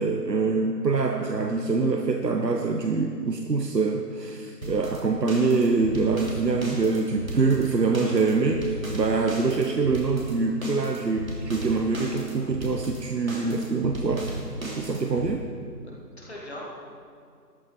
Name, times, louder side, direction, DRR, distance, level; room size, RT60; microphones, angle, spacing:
voice 1, 0.0-14.3 14.8-15.5, right 4 dB, 80° right, 3 dB, 1.2 m, -25 dB
sound 1, 4.6-15.3, right 1 dB, 55° right, 3.0 m, -35 dB
voice 2, 15.8-16.7, left 1 dB, 40° left, -4 dB, 2.2 m, -42 dB
15.5 x 13.5 x 4.7 m, 2.3 s
figure-of-eight pair, 175°, 49 cm